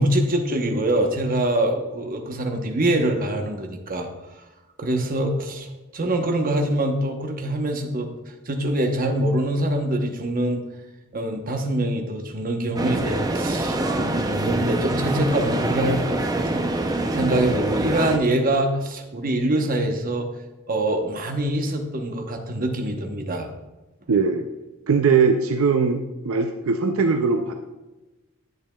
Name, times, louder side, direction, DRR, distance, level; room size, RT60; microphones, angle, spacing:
voice 1, 0.0-4.1 4.8-8.1 8.5-10.6 11.1-16.7 17.1-20.3 20.7-23.5, right 1 dB, 40° right, 4 dB, 0.9 m, -24 dB
sound 1, 12.8-18.2, right 2 dB, 20° right, 0.6 m, -25 dB
voice 2, 24.1-24.4 24.9-27.5, right 5 dB, 70° right, 6 dB, 0.5 m, -20 dB
10.5 x 8.6 x 2.3 m, 1.1 s
head